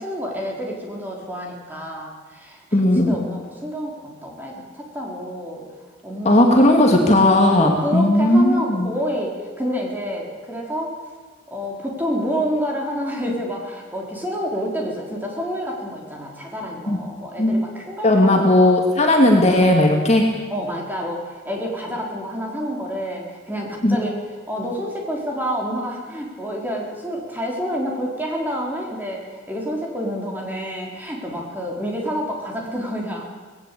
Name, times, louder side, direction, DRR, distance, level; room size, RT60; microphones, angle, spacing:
voice 1, 0.0-2.6 2.9-5.6 6.0-7.0 7.6-11.0 11.5-18.8 20.5-24.2 24.5-33.2, equal, 10° right, -1 dB, 4.1 m, -28 dB
voice 2, 2.7-3.2 6.2-8.9 16.9-17.0 17.4-17.5 18.0-20.2 23.8-24.0, left 1 dB, 35° left, 1 dB, 2.4 m, -16 dB
19.5 x 17.5 x 8.5 m, 1.4 s
head